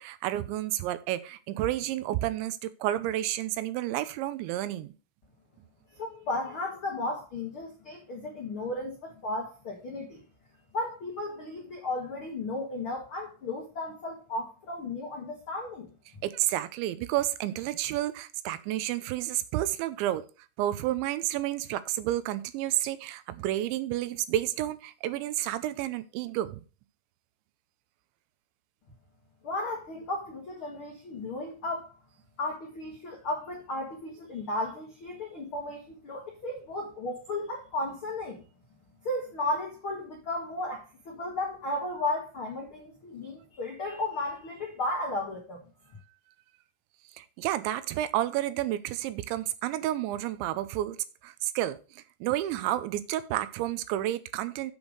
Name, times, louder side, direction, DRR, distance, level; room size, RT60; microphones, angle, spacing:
voice 1, 0.0-4.9 16.2-20.2 20.6-26.6 47.1-51.0 51.2-54.7, right 14 dB, 90° right, 3.0 m, -30 dB
voice 2, 5.9-10.2 10.7-15.9 29.4-31.9 32.4-38.4 39.0-45.6, left 2 dB, 80° left, 1.1 m, -34 dB
8.2 x 5.2 x 6.4 m
omnidirectional pair, 5.2 m